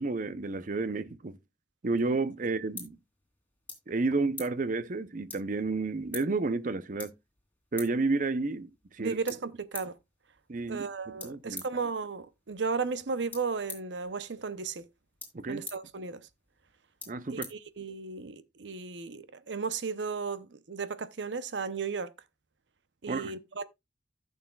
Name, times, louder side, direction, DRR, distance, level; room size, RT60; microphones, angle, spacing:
voice 1, 0.0-1.4 1.8-3.0 3.9-7.1 7.7-9.2 10.5-10.9 11.2-11.6 15.3-15.6 17.1-17.5 23.1-23.4, right 3 dB, 45° right, 0.6 m, -31 dB
sound 1, 2.0-18.3, left 4 dB, 10° left, 3.0 m, -49 dB
voice 2, 9.0-9.9 10.7-14.9 15.5-16.3 17.3-22.1 23.0-23.6, right 5 dB, 85° right, 0.7 m, -35 dB
15.0 x 6.4 x 2.3 m
head